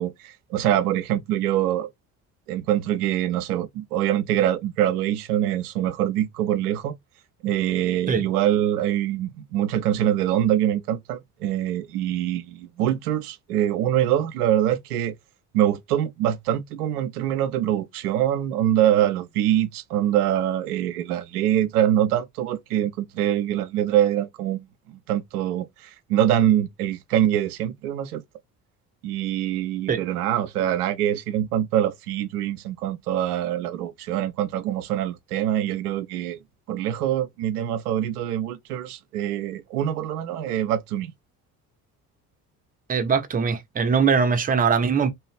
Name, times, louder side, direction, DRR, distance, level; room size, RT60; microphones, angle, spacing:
voice 1, 0.0-1.9 2.5-6.9 7.4-15.2 15.5-28.2 29.0-36.4 36.7-41.1, right 11 dB, 80° right, 0.5 m, -24 dB
voice 2, 42.9-45.1, right 6 dB, 20° right, 0.6 m, -21 dB
2.8 x 2.4 x 3.1 m
figure-of-eight pair, 50°, 46 cm